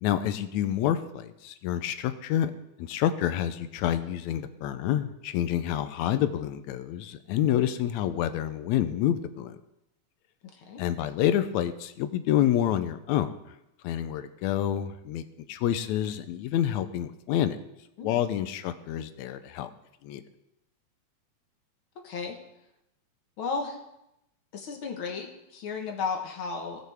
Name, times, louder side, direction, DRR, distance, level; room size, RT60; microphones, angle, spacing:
voice 1, 0.0-2.5 2.8-9.6 10.8-13.3 13.8-15.2 15.5-17.6 18.0-19.7 20.0-20.2, left 11 dB, 85° left, 11 dB, 2.0 m, -28 dB
voice 2, 10.4-10.8 18.0-18.2 22.0-22.4 23.4-23.8 24.5-26.9, left 5 dB, 55° left, 3 dB, 1.9 m, -34 dB
18.0 x 6.5 x 3.5 m, 0.86 s
omnidirectional pair, 3.3 m